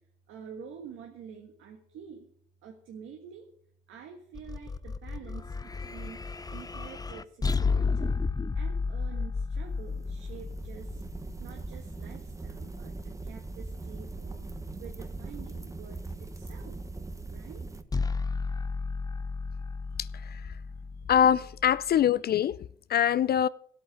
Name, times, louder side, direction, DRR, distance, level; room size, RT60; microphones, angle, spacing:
voice 1, 0.3-2.3 2.6-3.5 3.9-5.5 5.8-6.2 6.5-8.1 8.5-11.0 11.4-14.5 14.8-16.8 17.3-17.6, right 7 dB, 90° right, 1.5 m, -47 dB
sound 1, 4.3-11.7 17.9-22.0, left 4 dB, 20° left, 0.7 m, -33 dB
sound 2, 9.6-17.8, right 3 dB, 15° right, 1.2 m, -40 dB
voice 2, 20.0-20.4 21.1-22.6 22.9-23.5, left 9 dB, 50° left, 0.4 m, -24 dB
14.5 x 8.7 x 6.5 m
cardioid pair, 90°, 20 cm